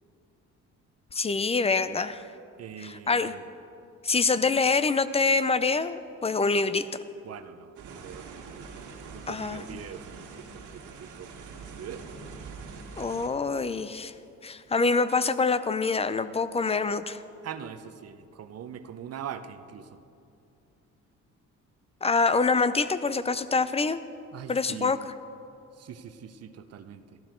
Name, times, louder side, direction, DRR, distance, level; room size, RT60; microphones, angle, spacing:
voice 1, 1.1-2.2 2.8-3.3 4.0-6.9 9.3-9.8 13.0-14.1 14.4-17.2 22.0-24.0 24.5-25.0, left 4 dB, 20° left, 14 dB, 0.5 m, -25 dB
voice 2, 2.6-3.5 7.2-8.7 9.1-12.0 17.4-20.0 24.3-25.0 25.7-27.2, right 8 dB, 55° right, 11 dB, 0.7 m, -42 dB
sound 1, 7.8-13.3, right 5 dB, 80° right, 1.8 m, -44 dB
13.5 x 12.0 x 4.5 m, 2.6 s
cardioid pair, 90°, 30 cm